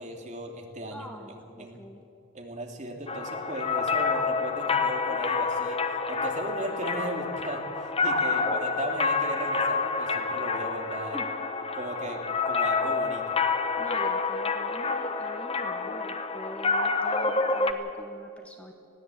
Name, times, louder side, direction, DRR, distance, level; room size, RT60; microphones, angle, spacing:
voice 1, 0.0-1.8 2.3-5.8 6.1-11.2 11.7-13.4, right 1 dB, 35° right, 2 dB, 2.6 m, -37 dB
voice 2, 0.9-2.0 8.3-8.6 11.1-11.4 13.8-18.7, equal, 5° left, 3 dB, 1.3 m, -44 dB
sound 1, 3.1-17.7, left 4 dB, 30° left, 1.0 m, -28 dB
21.0 x 15.5 x 8.3 m, 2.6 s
head